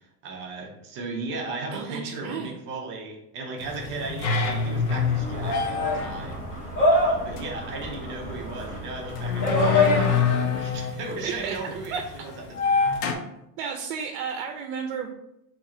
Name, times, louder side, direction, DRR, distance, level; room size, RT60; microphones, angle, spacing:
voice 1, 0.0-6.4 6.9-12.3 12.7-12.8, right 3 dB, 25° right, 0 dB, 0.6 m, -36 dB
voice 2, 1.7-2.5 10.6-10.7 11.2-11.6 11.9-12.0 12.7-12.8 13.6-15.1, right 6 dB, 70° right, 4 dB, 0.6 m, -33 dB
sound 1, 3.6-13.1, left 5 dB, 75° left, 0.8 m, -27 dB
sound 2, 4.1-10.5, left 2 dB, 20° left, 0.8 m, -27 dB
3.6 x 2.9 x 4.2 m, 0.84 s
supercardioid pair, 175°, 44 cm